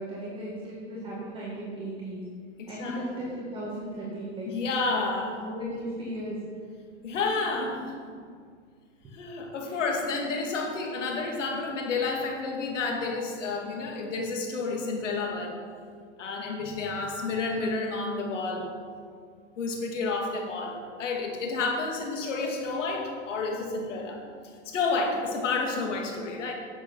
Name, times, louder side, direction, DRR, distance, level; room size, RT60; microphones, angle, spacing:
voice 1, 0.0-2.2 2.7-4.5 5.3-6.4 9.6-9.8, right 1 dB, 15° right, -7 dB, 1.8 m, -36 dB
voice 2, 2.6-3.0 4.5-5.8 7.0-8.0 9.1-15.6 16.2-18.7 19.6-24.2 24.7-26.5, left 3 dB, 90° left, 1 dB, 2.5 m, -30 dB
10.5 x 7.7 x 5.7 m, 2.1 s
supercardioid pair, 155°, 36 cm